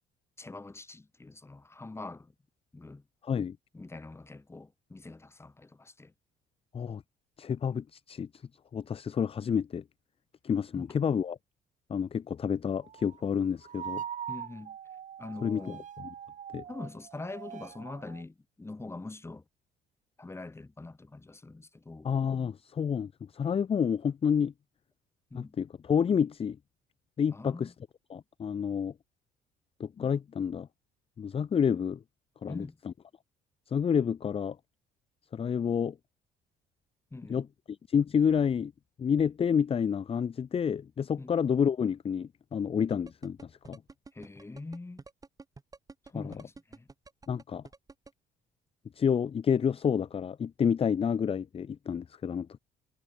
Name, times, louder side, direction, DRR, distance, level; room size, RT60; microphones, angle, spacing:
voice 1, 0.4-2.3 2.7-3.0 3.7-6.1 10.7-10.9 14.3-14.8 15.2-15.8 16.7-19.4 20.2-22.1 25.3-25.6 27.3-27.7 32.5-32.8 37.1-37.5 41.2-41.3 44.1-45.0 46.1-46.9, left 2 dB, 15° left, 4.6 m, -44 dB
voice 2, 7.4-8.3 8.7-9.8 10.4-11.4 11.9-14.0 15.4-15.6 16.5-16.6 22.0-24.5 25.3-26.6 27.2-27.7 28.1-28.9 29.8-30.7 31.2-32.0 32.4-32.6 33.7-34.6 35.3-35.9 37.3-37.5 37.9-38.7 39.0-43.4 43.7-43.8 46.1-46.3 47.3-47.6 49.0-52.6, left 7 dB, 35° left, 1.0 m, -29 dB
sound 1, 12.8-13.2 13.6-18.2, right 9 dB, 45° right, 1.8 m, -42 dB
sound 2, 42.9-48.1, right 3 dB, 20° right, 7.9 m, -49 dB
cardioid pair, 110°, 17 cm